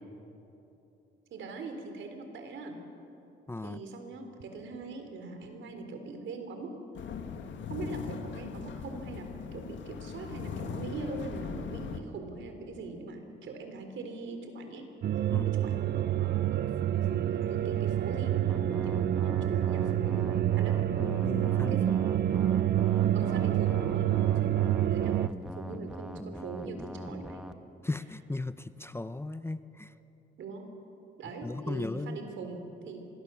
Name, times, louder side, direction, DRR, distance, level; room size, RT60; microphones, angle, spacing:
voice 1, 1.3-2.8 3.6-6.7 7.7-14.9 15.4-20.3 20.6-20.8 21.7-21.9 23.1-24.1 24.9-25.3 25.5-27.4 30.4-30.6 31.2-33.0, right 3 dB, 70° right, 5 dB, 3.9 m, -41 dB
voice 2, 3.5-3.8 15.3-15.5 21.0-22.0 27.8-29.9 31.4-32.2, left 2 dB, 10° left, 13 dB, 0.7 m, -36 dB
sound 1, 7.0-12.0, left 6 dB, 70° left, 1.9 m, -39 dB
horror background atmosphere, 15.0-25.3, right 12 dB, 55° right, 0.6 m, -27 dB
sound 2, 18.5-27.5, equal, 5° right, 1.2 m, -42 dB
26.0 x 21.0 x 7.1 m, 3.0 s
cardioid pair, 90°, 20 cm